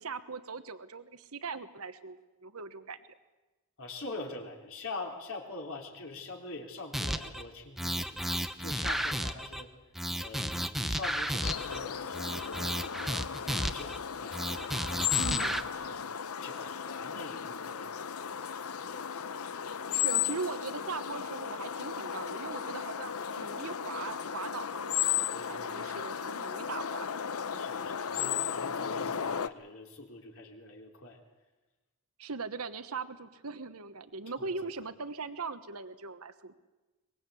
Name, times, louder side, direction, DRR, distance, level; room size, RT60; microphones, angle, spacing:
voice 1, 0.0-2.2 2.4-3.0 15.2-15.6 19.9-27.1 32.2-36.5, right 4 dB, 80° right, 11 dB, 1.2 m, -40 dB
voice 2, 3.8-8.3 8.6-9.7 10.2-12.2 12.4-13.3 13.7-15.5 15.9-16.0 16.4-17.9 18.2-18.9 19.5-19.7 25.3-25.9 27.5-31.2 34.4-34.5, left 3 dB, 65° left, 2 dB, 3.8 m, -44 dB
sound 1, 6.9-7.4 7.8-9.6 10.0-11.8 12.1-14.0 14.3-15.6, equal, ahead, 1.0 m, -33 dB
sound 2, 11.4-29.5, left 8 dB, 80° left, 0.8 m, -35 dB
23.5 x 21.0 x 8.4 m, 1.2 s
head